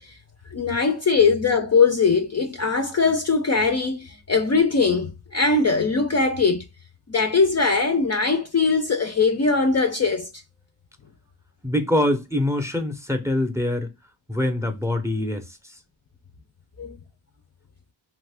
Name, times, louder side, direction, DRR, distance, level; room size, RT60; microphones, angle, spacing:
voice 1, 0.5-6.6 7.1-10.3 16.8-17.0, left 4 dB, 35° left, 0.4 m, -21 dB
voice 2, 11.6-13.9 14.3-15.4, left 1 dB, 5° right, 0.6 m, -24 dB
2.8 x 2.5 x 3.3 m
wide cardioid pair, 110°, 46 cm